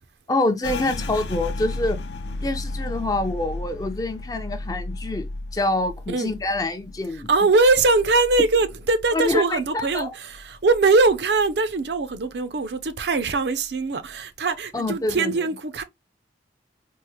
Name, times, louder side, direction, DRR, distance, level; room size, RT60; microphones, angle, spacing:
voice 1, 0.3-2.0 2.4-7.3 9.1-10.1 14.7-15.5, left 2 dB, 20° left, 0.5 m, -26 dB
sound 1, 0.6-10.0 10.3-11.6 11.9-12.4 12.8-13.4, left 2 dB, 75° left, 0.5 m, -34 dB
voice 2, 7.3-15.8, right 3 dB, 70° right, 0.5 m, -21 dB
4.4 x 2.1 x 3.1 m
head